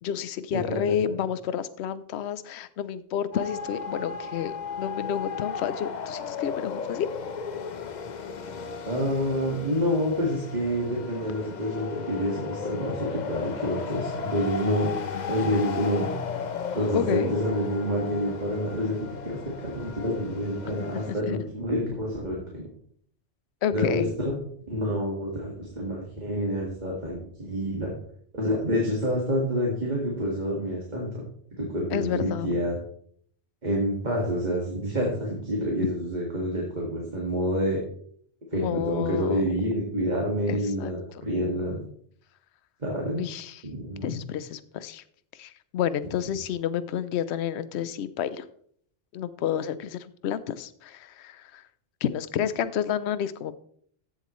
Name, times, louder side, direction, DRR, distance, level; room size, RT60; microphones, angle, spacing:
voice 1, 0.0-7.1 16.9-17.4 20.7-21.4 23.6-24.1 31.9-32.5 38.5-39.4 40.5-40.9 43.2-43.6 44.0-45.0 45.4-48.4 49.1-51.6 52.0-53.5, left 9 dB, 70° left, 15 dB, 0.9 m, -30 dB
sound 1, 3.3-21.1, left 5 dB, 45° left, 0.8 m, -35 dB
voice 2, 8.8-14.9 15.3-16.1 16.8-22.7 23.7-24.4 24.7-27.9 28.3-31.2 31.6-32.8 33.6-37.8 38.5-41.8 42.8-43.2 43.7-44.2, equal, 40° right, -2 dB, 2.1 m, -28 dB
15.0 x 7.7 x 3.1 m, 0.62 s
omnidirectional pair, 1.2 m